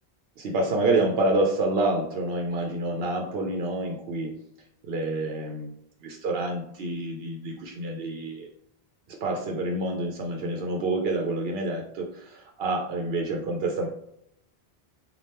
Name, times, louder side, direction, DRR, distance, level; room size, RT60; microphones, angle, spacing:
voice 1, 0.4-4.3 4.8-5.7 6.0-8.5 9.2-13.9, right 2 dB, 70° right, 1 dB, 0.8 m, -28 dB
3.3 x 2.4 x 4.2 m, 0.76 s
omnidirectional pair, 1.1 m